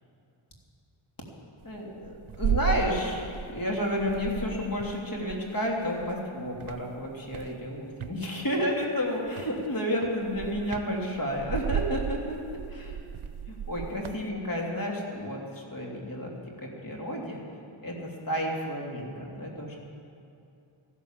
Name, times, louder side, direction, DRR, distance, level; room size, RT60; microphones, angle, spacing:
voice 1, 1.6-13.0 13.5-16.4 16.8-17.4 17.8-19.8, equal, 40° left, -2 dB, 3.1 m, -31 dB
sound 1, 1.6-3.7 4.0-6.2 6.6-8.2 9.3-9.6 10.0-14.3, right 8 dB, 75° right, 0.7 m, -34 dB
14.5 x 12.5 x 7.4 m, 2.6 s
wide cardioid pair, 100°, 50 cm